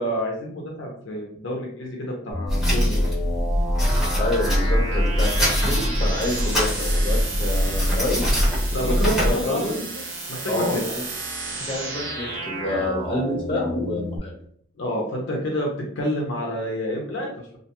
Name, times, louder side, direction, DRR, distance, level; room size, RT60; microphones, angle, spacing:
voice 1, 0.0-3.0 8.7-10.0 10.3-10.8 14.8-15.7 16.0-17.5, equal, 75° left, -1 dB, 0.6 m, -28 dB
sound 1, 2.3-14.2, right 1 dB, 85° right, 0.7 m, -32 dB
sound 2, 2.5-9.3, equal, 5° right, 0.9 m, -22 dB
voice 2, 4.1-8.2 8.7-9.8 10.5-11.0 11.7-14.3, left 2 dB, 30° left, -3 dB, 1.0 m, -28 dB
2.4 x 2.2 x 2.8 m, 0.64 s
head